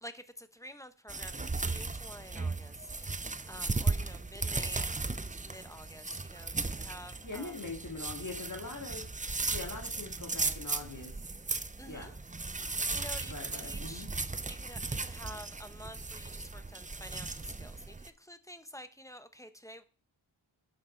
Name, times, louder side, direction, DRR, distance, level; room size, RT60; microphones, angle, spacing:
voice 1, 0.0-7.7 11.8-12.1 12.6-14.1 14.5-19.8, equal, 5° left, 0.9 m, -49 dB
sound 1, 1.1-18.1, right 3 dB, 15° right, 0.5 m, -36 dB
voice 2, 7.2-9.0 9.5-11.1 11.8-12.1 13.3-14.1, left 3 dB, 40° left, 2.0 m, -42 dB
10.0 x 6.7 x 4.4 m
wide cardioid pair, 80°, 50 cm